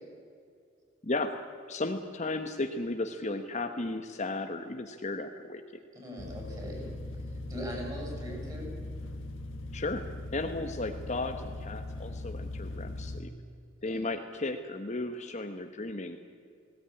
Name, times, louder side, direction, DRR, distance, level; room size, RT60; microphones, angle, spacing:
voice 1, 1.0-1.3 1.7-5.6 9.7-10.0 10.3-13.3 13.8-16.2, left 2 dB, 35° left, 6 dB, 1.1 m, -34 dB
voice 2, 5.9-6.9 7.5-8.7 13.9-14.1, equal, 20° right, -1 dB, 7.8 m, -40 dB
sound 1, 6.2-13.2, left 1 dB, 75° left, 1.4 m, -40 dB
19.0 x 18.0 x 9.8 m, 2.3 s
head